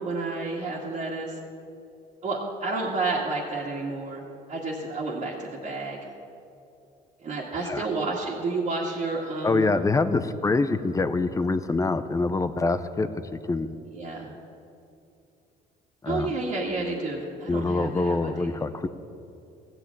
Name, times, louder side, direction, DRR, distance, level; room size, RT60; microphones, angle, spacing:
voice 1, 0.0-1.4 2.2-4.2 4.5-6.0 7.2-9.7 13.9-14.3 16.1-18.5, right 3 dB, 45° right, -5 dB, 2.0 m, -30 dB
voice 2, 7.6-7.9 9.4-13.7 16.0-16.4 17.5-18.9, left 3 dB, 20° left, 12 dB, 0.6 m, -25 dB
15.5 x 6.1 x 8.8 m, 2.6 s
cardioid pair, 110°, 17 cm